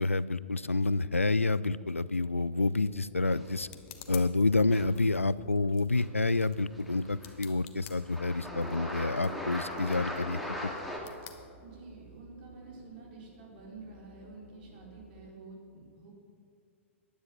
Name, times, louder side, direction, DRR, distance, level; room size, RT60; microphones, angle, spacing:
voice 1, 0.0-3.7 4.1-10.7, left 3 dB, 85° left, 18 dB, 0.4 m, -28 dB
sound 1, 2.2-15.3, right 1 dB, 15° left, 2.5 m, -56 dB
sound 2, 2.3-12.2, left 11 dB, 35° left, 1.2 m, -54 dB
sound 3, 3.2-3.8 4.7-5.0 5.9-6.1 6.4-7.5 7.8-11.0, left 1 dB, ahead, 2.4 m, -40 dB
voice 2, 11.6-16.1, right 3 dB, 45° right, -2 dB, 4.1 m, -49 dB
15.0 x 10.5 x 6.0 m, 2.3 s
figure-of-eight pair, 105°, 7 cm